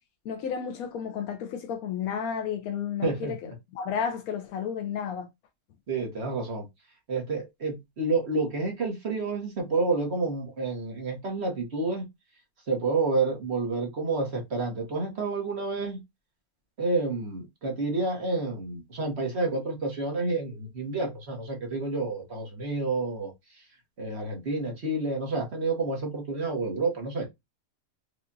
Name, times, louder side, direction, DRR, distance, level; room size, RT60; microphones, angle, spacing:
voice 1, 0.2-5.3, left 7 dB, 80° left, 1.1 m, -32 dB
voice 2, 3.0-3.5 5.9-6.7 7.1-12.0 12.7-16.0 16.8-23.3 24.0-27.3, right 3 dB, 50° right, 1.4 m, -29 dB
4.8 x 2.4 x 2.6 m
omnidirectional pair, 1.5 m